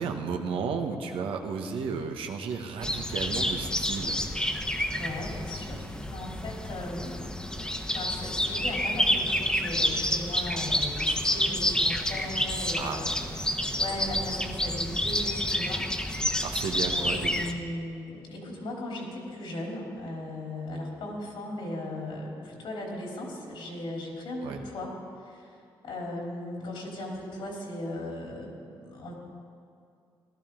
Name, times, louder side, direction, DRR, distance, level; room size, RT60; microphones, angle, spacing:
voice 1, 0.0-4.2 12.8-13.0 16.4-17.6 24.4-24.6, right 5 dB, 80° right, 4 dB, 1.1 m, -33 dB
sound 1, 2.8-17.5, left 1 dB, 10° left, 1.1 m, -29 dB
voice 2, 5.0-7.5 7.9-15.9 16.2-16.4 16.9-25.0 25.2-25.5 25.8-29.1, left 1 dB, 70° left, -2 dB, 3.6 m, -37 dB
17.0 x 12.5 x 3.8 m, 2.5 s
cardioid pair, 75°, 9 cm